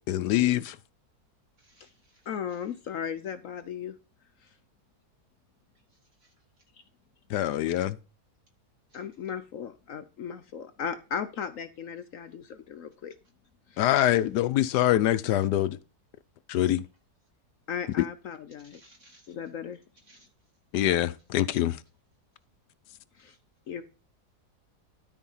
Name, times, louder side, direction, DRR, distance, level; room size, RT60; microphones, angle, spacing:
voice 1, 0.1-0.8 7.3-8.0 13.8-15.8 16.5-16.8 18.0-18.1 20.7-21.8, left 13 dB, 90° left, 1.3 m, -24 dB
voice 2, 1.6-2.7 5.9-6.3 8.9-9.1 18.6-19.3 20.0-20.3 23.2-23.4, right 1 dB, 45° right, 3.3 m, -61 dB
voice 3, 2.3-3.9 8.9-13.1 13.7-13.8 17.7-18.8 19.3-19.8 23.2-23.3 23.7-23.8, left 7 dB, 60° left, 1.0 m, -36 dB
12.5 x 4.9 x 5.5 m
omnidirectional pair, 1.7 m